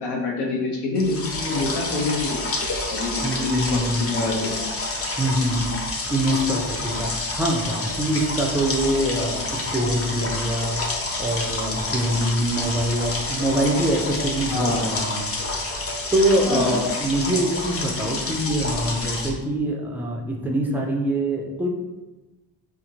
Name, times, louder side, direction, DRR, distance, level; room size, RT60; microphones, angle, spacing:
voice 1, 0.0-2.5 2.9-4.6 8.8-8.9 14.5-14.9 16.5-16.8, left 3 dB, 70° left, -1 dB, 0.9 m, -26 dB
sound 1, 1.0-19.3, left 2 dB, 35° left, 0.6 m, -28 dB
voice 2, 3.2-4.5 5.2-5.8 6.1-10.8 11.2-15.3 16.1-21.7, right 1 dB, 5° right, 1 dB, 0.4 m, -24 dB
4.2 x 2.5 x 2.7 m, 1.1 s
cardioid pair, 105°, 43 cm